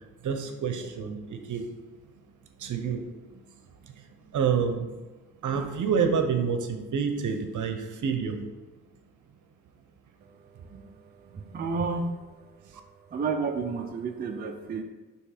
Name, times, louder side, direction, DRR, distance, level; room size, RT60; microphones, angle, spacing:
voice 1, 0.2-1.6 2.6-3.0 3.8-3.9 4.3-4.9 5.4-8.4 10.7-10.8, right 6 dB, 55° right, 6 dB, 0.8 m, -28 dB
voice 2, 11.5-12.1 13.1-14.8, right 4 dB, 25° right, 2 dB, 0.5 m, -30 dB
6.4 x 3.1 x 4.9 m, 1.2 s
cardioid pair, 125°, 36 cm